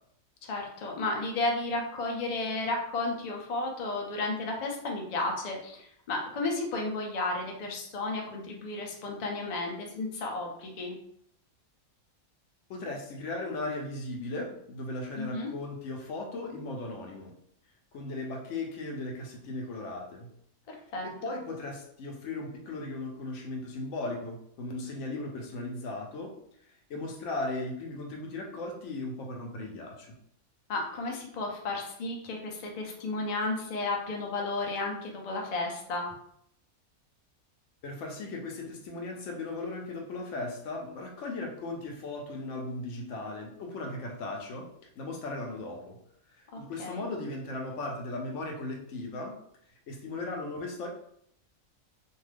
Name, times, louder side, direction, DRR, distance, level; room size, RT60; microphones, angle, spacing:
voice 1, 0.4-10.9 15.2-15.5 20.7-21.1 30.7-36.1 46.5-47.1, left 2 dB, 90° left, 1 dB, 0.3 m, -33 dB
voice 2, 12.7-17.3 17.9-20.3 21.0-26.4 26.6-30.2 37.8-44.7 45.0-46.0 46.3-49.4 49.9-50.9, left 2 dB, 65° left, 1 dB, 0.8 m, -37 dB
2.6 x 2.3 x 3.3 m, 0.71 s
omnidirectional pair, 1.5 m